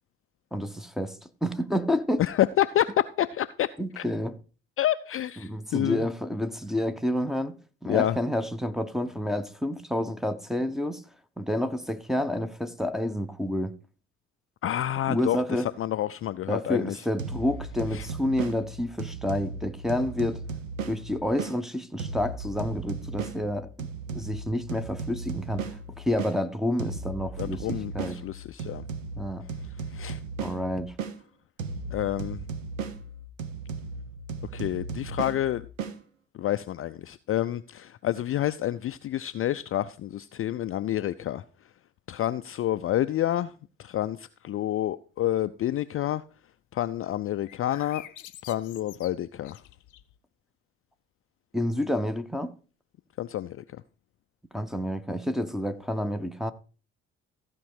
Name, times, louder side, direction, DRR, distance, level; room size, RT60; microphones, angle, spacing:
voice 1, 0.5-2.2 3.8-4.4 5.4-7.6 7.8-11.0 11.4-13.7 15.1-15.7 16.5-20.4 20.9-23.9 24.1-25.7 26.0-28.2 29.2-29.5 30.4-30.9 51.5-52.5 54.5-56.5, left 1 dB, ahead, 0.8 m, -29 dB
voice 2, 2.2-3.7 4.0-4.1 4.8-6.1 7.9-8.2 14.6-17.0 17.9-18.1 27.4-28.8 29.9-30.2 31.9-32.4 34.5-35.6 36.3-41.4 42.1-43.5 43.8-46.2 46.7-48.1 48.5-49.6 53.2-53.8, left 12 dB, 35° left, 0.4 m, -28 dB
sound 1, 17.2-21.6 22.0-26.4 26.8-31.2 31.6-36.0, right 4 dB, 85° right, 0.8 m, -36 dB
sound 2, 47.4-50.2, left 13 dB, 50° left, 0.8 m, -47 dB
14.5 x 5.3 x 4.7 m
figure-of-eight pair, 50°, 38 cm